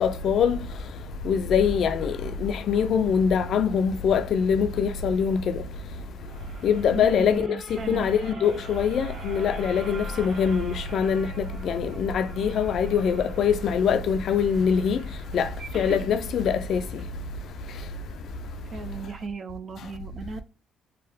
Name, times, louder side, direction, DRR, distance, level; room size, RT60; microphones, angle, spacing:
voice 1, 0.0-0.6 1.3-2.1 2.4-5.4 6.6-7.5 7.9-11.3 11.6-15.0 15.3-15.5 15.7-16.8, left 7 dB, 70° left, 0.3 m, -23 dB
sound 1, 5.9-16.1 16.6-16.7 16.9-17.0, right 3 dB, 75° right, 1.2 m, -44 dB
voice 2, 6.9-8.1 18.7-20.4, right 4 dB, 45° right, 0.4 m, -36 dB
2.7 x 2.1 x 2.5 m
cardioid pair, 90°, 0 cm